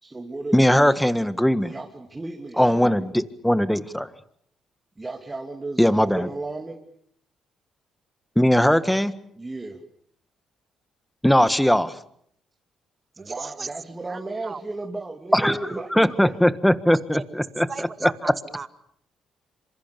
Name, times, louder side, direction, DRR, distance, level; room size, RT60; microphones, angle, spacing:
voice 1, 0.0-0.6 1.6-3.0 5.0-6.8 9.4-9.8 13.2-16.4, right 2 dB, 20° right, 1 dB, 3.0 m, -34 dB
voice 2, 0.5-1.7 2.6-4.1 5.8-6.3 8.3-9.1 11.2-12.0 15.3-15.6 15.9-18.3, equal, 5° left, 13 dB, 1.6 m, -20 dB
voice 3, 13.2-13.7 14.1-14.6 15.4-15.5 16.9-17.2 17.7-18.7, right 4 dB, 35° right, 11 dB, 1.9 m, -36 dB
27.0 x 26.5 x 7.0 m, 0.67 s
cardioid pair, 90°, 0 cm